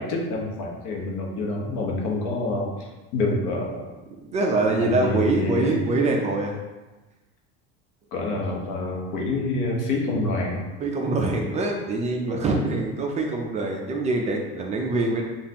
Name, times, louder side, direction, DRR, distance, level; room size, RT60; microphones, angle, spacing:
voice 1, 0.0-3.8 4.8-5.7 8.1-10.6, left 2 dB, 75° left, -1 dB, 1.0 m, -27 dB
voice 2, 4.2-6.6 10.8-15.2, right 2 dB, 25° right, 0 dB, 0.4 m, -24 dB
5.3 x 2.5 x 2.8 m, 1.1 s
cardioid pair, 145°, 30 cm